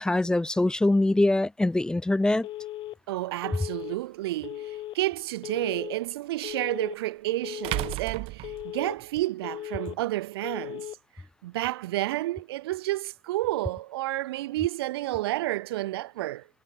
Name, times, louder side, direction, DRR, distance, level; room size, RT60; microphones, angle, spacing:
voice 1, 0.0-2.5, left 2 dB, 5° left, 1.1 m, -23 dB
Telephone, 2.4-3.0 3.4-4.0 4.4-5.0 5.4-6.0 6.4-7.0 7.4-8.0 8.4-9.0 9.4-10.0 10.4-11.0, left 14 dB, 40° left, 3.2 m, -37 dB
voice 2, 3.1-10.9 11.4-16.5, right 17 dB, 70° right, 1.0 m, -30 dB
sound 1, 3.8-3.9 6.5-6.6 7.6-9.2, right 20 dB, 45° right, 2.3 m, -33 dB
hypercardioid pair, 110°, 13 cm